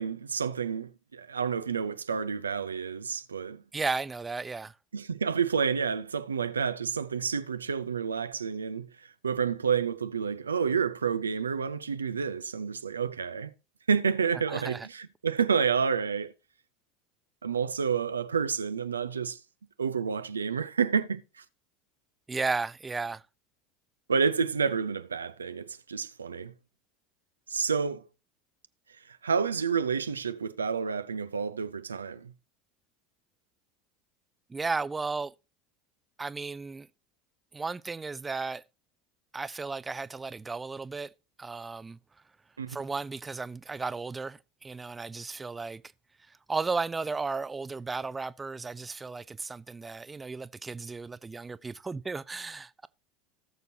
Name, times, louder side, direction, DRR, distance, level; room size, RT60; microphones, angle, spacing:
voice 1, 0.0-3.6 4.9-8.9 9.2-13.5 13.9-16.3 17.4-19.4 19.8-21.2 24.1-26.5 27.5-28.1 29.2-32.3 42.6-42.8, right 6 dB, 90° right, 0.5 m, -29 dB
voice 2, 3.7-4.7 14.5-14.9 22.3-23.2 34.5-35.3 36.2-36.9 37.5-38.6 39.3-41.1 41.4-42.0 42.7-45.8 46.3-52.9, right 4 dB, 20° right, 0.5 m, -34 dB
18.0 x 6.7 x 2.7 m
hypercardioid pair, 80°, 0 cm